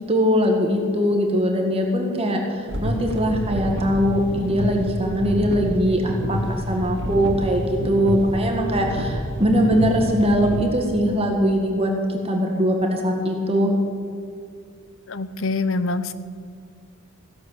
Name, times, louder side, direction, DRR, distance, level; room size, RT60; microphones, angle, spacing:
voice 1, 0.0-11.9 12.2-13.7, equal, 30° right, 2 dB, 1.8 m, -21 dB
sound 1, 2.7-10.6, equal, 60° right, 2.1 m, -28 dB
voice 2, 15.1-16.1, left 3 dB, 65° left, 13 dB, 0.8 m, -25 dB
16.0 x 11.0 x 7.2 m, 2.3 s
head